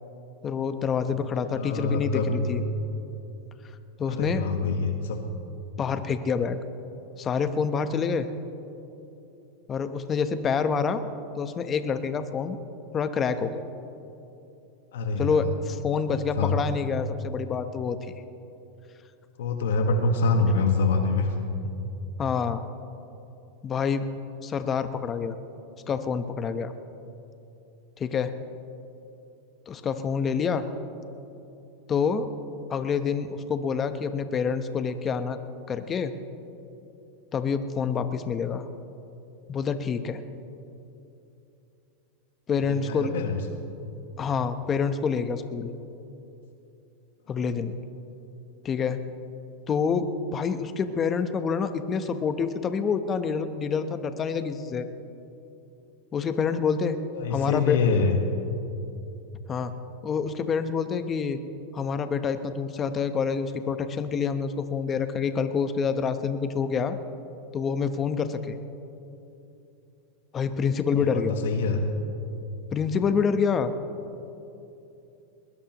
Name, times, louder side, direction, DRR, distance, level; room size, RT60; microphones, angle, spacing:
voice 1, 0.4-2.6 4.0-4.5 5.8-6.6 7.2-8.3 9.7-11.0 11.4-12.6 12.9-13.6 15.2-18.0 22.2-22.6 23.6-24.1 24.4-25.3 25.9-26.7 28.0-28.3 29.7-30.7 31.9-32.3 32.7-35.4 35.7-36.1 37.3-38.7 39.5-40.2 42.5-43.2 44.2-45.7 47.3-47.7 48.6-49.0 49.7-54.9 56.1-57.0 57.3-57.8 59.5-59.7 60.0-61.4 61.7-67.0 67.5-68.6 70.3-71.4 72.7-73.7, left 6 dB, 25° left, 9 dB, 0.9 m, -27 dB
voice 2, 1.6-2.4 4.0-5.2 14.9-15.6 16.4-16.6 19.4-21.3 21.6-21.7 42.6-43.4 57.1-58.2 70.9-71.8, left 3 dB, 85° left, 4 dB, 1.4 m, -25 dB
21.0 x 20.5 x 3.0 m, 2.9 s
supercardioid pair, 130°, 0 cm